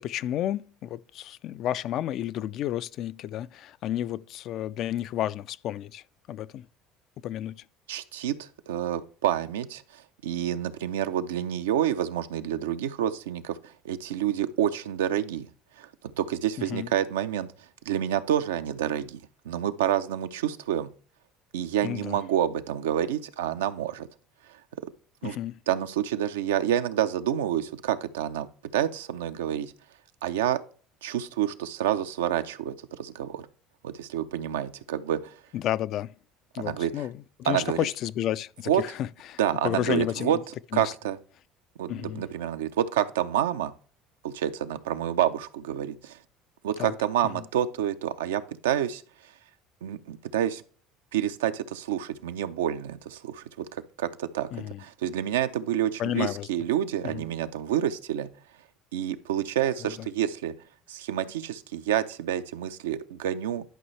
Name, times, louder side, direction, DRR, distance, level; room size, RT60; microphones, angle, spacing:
voice 1, 0.0-6.7 7.2-7.6 16.7-16.9 21.8-22.2 25.2-25.6 35.5-36.1 36.5-40.4 40.7-40.9 41.9-42.2 46.8-46.9 47.3-47.4 54.5-54.8 56.0-56.5 57.0-57.2 59.8-60.1, left 12 dB, 60° left, 0.3 m, -31 dB
voice 2, 7.9-15.5 15.8-15.9 16.2-17.5 17.9-20.9 21.5-24.1 25.2-25.4 25.7-28.5 28.7-29.7 30.2-30.6 31.0-33.4 33.8-35.4 36.6-37.1 37.4-37.9 38.7-38.8 39.4-40.4 40.7-41.2 41.8-43.7 44.2-46.2 46.6-49.0 49.8-50.6 51.1-58.3 58.9-60.5 60.9-63.6, right 10 dB, 85° right, 0.5 m, -28 dB
11.0 x 5.4 x 3.2 m
hypercardioid pair, 75°, 0 cm